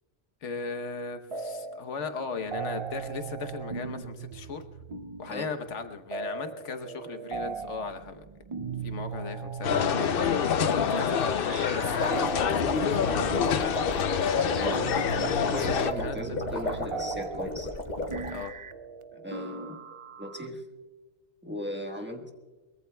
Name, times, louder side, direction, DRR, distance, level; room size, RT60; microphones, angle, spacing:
voice 1, 0.4-4.6 5.2-8.2 8.8-10.1 10.5-13.9 15.3-16.2 16.7-16.8 18.3-18.5, left 5 dB, 85° left, 7 dB, 1.4 m, -37 dB
sound 1, 1.3-1.9 2.2-20.5, right 5 dB, 55° right, 0.3 m, -38 dB
sound 2, 9.6-15.9, left 8 dB, 60° left, 0.8 m, -27 dB
sound 3, 11.6-18.4, left 2 dB, 35° left, 1.7 m, -34 dB
voice 2, 14.5-14.9 15.1-17.7 19.1-19.8 20.2-20.6 21.4-22.3, equal, 10° right, 1 dB, 1.3 m, -37 dB
23.0 x 21.5 x 2.3 m, 1.3 s
omnidirectional pair, 1.2 m